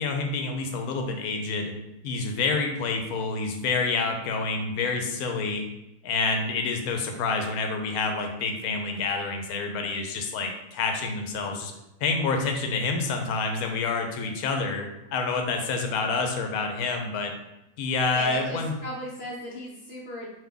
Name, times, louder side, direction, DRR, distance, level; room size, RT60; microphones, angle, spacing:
voice 1, 0.0-1.7 2.0-5.7 6.0-11.7 12.0-17.3 17.8-18.7, left 4 dB, 80° left, 4 dB, 1.1 m, -28 dB
voice 2, 18.1-20.3, left 2 dB, 50° left, -3 dB, 0.8 m, -36 dB
3.4 x 2.9 x 3.7 m, 0.90 s
omnidirectional pair, 1.6 m